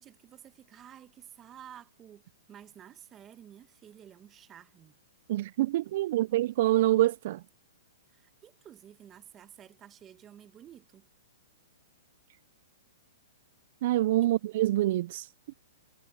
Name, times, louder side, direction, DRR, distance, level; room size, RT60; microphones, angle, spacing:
voice 1, 0.0-2.2 2.5-5.0 8.1-11.1 14.2-14.3, right 10 dB, 20° right, 1.7 m, -52 dB
voice 2, 5.3-7.4 13.8-15.3, right 15 dB, 50° right, 0.3 m, -26 dB
hypercardioid pair, 150°, 0 cm